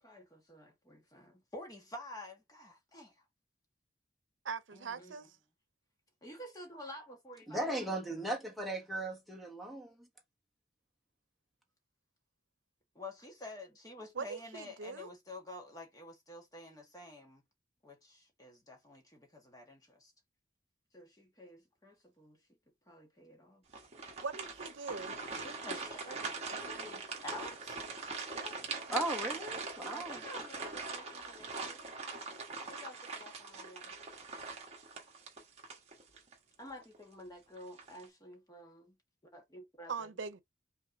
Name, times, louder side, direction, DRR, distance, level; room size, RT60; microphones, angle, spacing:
voice 1, 0.0-3.1 4.7-5.1 6.2-7.9 12.9-17.4 17.8-20.1 20.9-22.4 22.9-23.6 25.4-27.8 28.3-28.6 28.9-29.1 29.9-31.9 32.7-33.9 36.6-39.0 39.3-40.1, left 1 dB, 20° left, 1.5 m, -50 dB
voice 2, 4.4-5.3 14.2-15.1 24.2-25.2 39.9-40.4, right 5 dB, 90° right, 0.7 m, -41 dB
voice 3, 7.5-10.1 28.9-30.2, right 1 dB, ahead, 1.3 m, -37 dB
sound 1, 23.7-36.3 36.8-37.0 37.6-38.0, right 4 dB, 35° right, 1.4 m, -42 dB
5.5 x 3.1 x 2.7 m
head